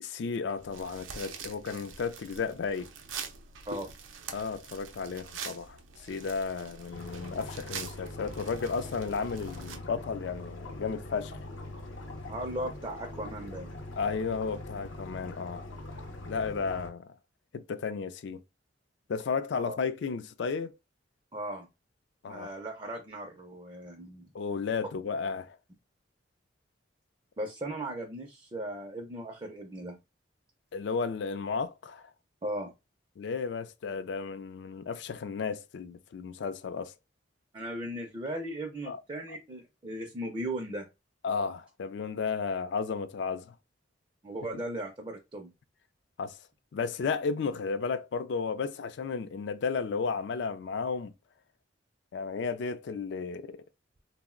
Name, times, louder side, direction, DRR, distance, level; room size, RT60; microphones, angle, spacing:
voice 1, 0.0-2.9 4.3-11.4 14.0-15.6 16.3-17.1 17.5-18.4 19.1-20.7 22.2-22.5 24.3-25.6 30.7-32.1 33.2-36.9 38.9-39.0 41.2-43.6 46.2-46.4 46.7-51.1 52.1-53.6, left 5 dB, 65° left, 0.3 m, -33 dB
sound 1, 0.6-9.8, right 6 dB, 90° right, 0.5 m, -44 dB
sound 2, 6.9-16.9, left 2 dB, 90° left, 0.7 m, -42 dB
voice 2, 12.3-13.7 19.5-19.8 21.3-21.7 22.3-24.3 27.4-30.0 32.4-32.7 37.5-40.9 44.2-45.5, right 1 dB, 25° right, 0.4 m, -37 dB
2.4 x 2.0 x 3.6 m
head